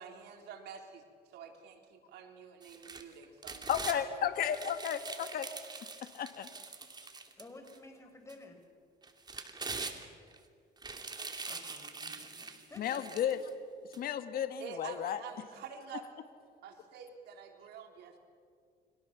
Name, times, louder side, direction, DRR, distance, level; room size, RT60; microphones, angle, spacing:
voice 1, 0.0-4.1 14.6-16.1 16.6-18.2, right 7 dB, 75° right, 4 dB, 3.5 m, -48 dB
sound 1, 2.6-4.0 4.4-7.8 8.3-8.4 9.0-10.4 10.8-13.4 13.9-14.0, right 4 dB, 25° right, 2.6 m, -43 dB
voice 2, 3.7-5.5 6.1-6.5 12.8-13.4 14.0-15.2, left 9 dB, 60° left, 9 dB, 1.7 m, -33 dB
voice 3, 7.4-8.6 11.5-13.2, left 2 dB, 15° left, 5 dB, 5.3 m, -53 dB
29.5 x 24.0 x 7.2 m, 2.2 s
cardioid pair, 110°, 17 cm